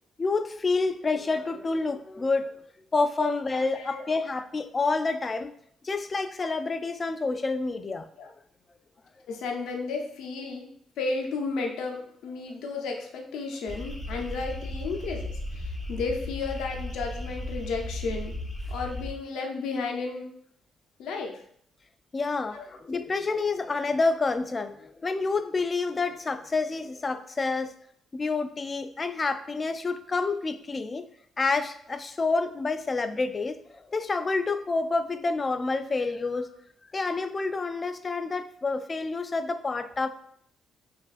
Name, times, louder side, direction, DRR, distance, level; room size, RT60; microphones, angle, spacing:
voice 1, 0.2-2.6 2.9-5.5 5.8-8.1 22.1-27.7 28.1-31.1 31.4-36.5 36.9-40.1, left 3 dB, 30° left, 11 dB, 0.3 m, -28 dB
voice 2, 3.2-4.0 8.2-8.3 9.3-10.7 11.0-18.4 18.7-20.3 21.0-21.4 22.5-22.7, left 4 dB, 85° left, 2 dB, 0.6 m, -33 dB
sound 1, 13.7-19.1, left 1 dB, 10° left, 0.9 m, -35 dB
5.3 x 2.5 x 2.5 m, 0.67 s
cardioid pair, 90°, 0 cm